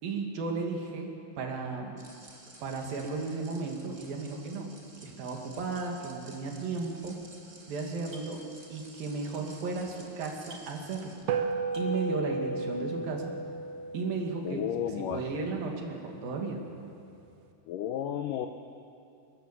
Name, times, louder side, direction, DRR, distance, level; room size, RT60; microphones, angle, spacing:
voice 1, 0.0-1.1 1.4-2.0 2.6-4.7 5.0-7.2 7.7-8.4 8.7-11.2 11.8-13.3 13.9-14.6 15.0-16.6, right 4 dB, 65° right, 2 dB, 3.7 m, -34 dB
sound 1, 2.0-11.2, right 1 dB, 20° right, 0.9 m, -53 dB
sound 2, 6.9-7.6 7.9-8.5 8.8-9.8 10.1-10.2 10.4-11.4 11.6-12.1, right 1 dB, 45° right, 1.8 m, -54 dB
sound 3, 11.3-15.9, right 3 dB, 85° right, 3.2 m, -34 dB
voice 2, 14.4-15.5 17.7-18.5, left 10 dB, 90° left, 6 dB, 1.9 m, -33 dB
23.0 x 18.0 x 7.3 m, 2.6 s
omnidirectional pair, 4.7 m